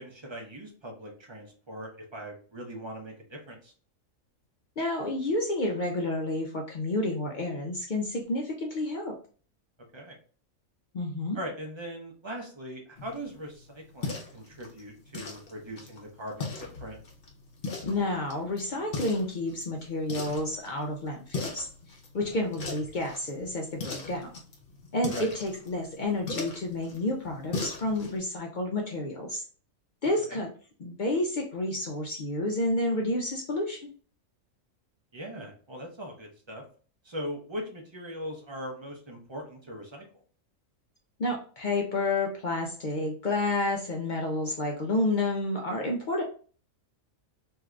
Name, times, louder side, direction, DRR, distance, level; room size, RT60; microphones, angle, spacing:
voice 1, 0.0-3.7 9.9-10.1 11.3-17.0 22.3-22.4 25.1-25.3 30.3-30.4 35.1-36.6 37.0-40.0, equal, 35° right, 1 dB, 0.4 m, -40 dB
voice 2, 4.8-9.1 10.9-11.4 17.8-21.7 22.1-24.3 24.9-29.4 30.0-30.5 30.8-33.9 41.2-46.2, left 2 dB, 70° left, 0 dB, 0.4 m, -30 dB
sound 1, 13.0-28.2, left 3 dB, 50° left, 0.8 m, -40 dB
2.7 x 2.4 x 3.1 m, 0.41 s
omnidirectional pair, 1.4 m